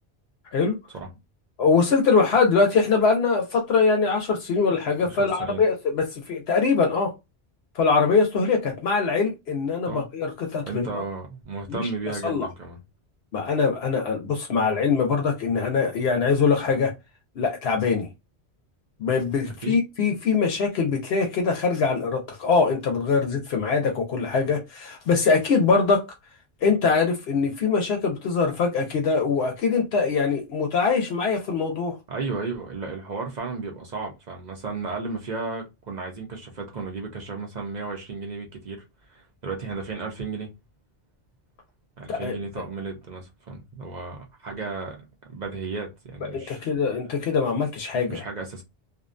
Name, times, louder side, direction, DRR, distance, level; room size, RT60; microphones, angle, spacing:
voice 1, 1.6-7.1 7.8-11.0 11.7-11.8 12.2-12.5 13.3-16.9 17.4-18.1 19.0-26.0 26.6-32.0 42.1-42.3 46.3-48.2, left 5 dB, 70° left, 0.8 m, -23 dB
voice 2, 5.0-5.6 9.8-10.1 10.7-12.8 19.4-19.8 32.1-38.8 39.1-40.5 42.0-46.7 48.1-48.6, right 4 dB, 50° right, 0.6 m, -34 dB
2.5 x 2.1 x 2.4 m
omnidirectional pair, 1.1 m